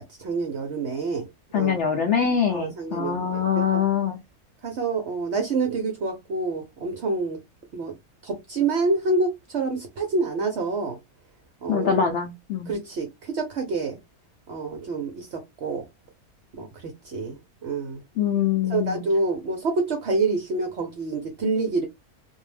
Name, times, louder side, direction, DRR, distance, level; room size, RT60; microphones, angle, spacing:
voice 1, 0.2-1.3 1.5-1.7 2.5-3.9 4.6-7.4 7.7-7.9 8.2-11.0 11.6-11.9 12.7-14.0 14.5-15.8 16.6-18.0 18.7-21.9, right 3 dB, 60° right, 0.8 m, -27 dB
voice 2, 1.5-4.2 11.7-12.8 18.2-19.0, left 7 dB, 65° left, 0.8 m, -24 dB
2.6 x 2.0 x 3.2 m
omnidirectional pair, 1.5 m